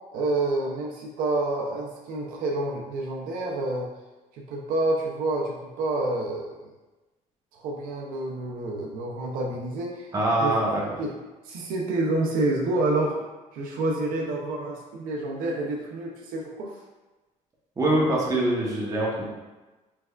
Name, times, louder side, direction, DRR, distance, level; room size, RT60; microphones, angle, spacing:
voice 1, 0.1-3.9 4.3-6.6 7.5-10.1 10.4-10.5 11.0-11.1 11.4-13.1 13.5-16.7, right 2 dB, 80° right, -2 dB, 0.5 m, -28 dB
voice 2, 10.1-10.8 17.8-19.2, right 1 dB, 25° right, -5 dB, 0.9 m, -23 dB
3.3 x 3.2 x 2.3 m, 1.2 s
cardioid pair, 115°, 14 cm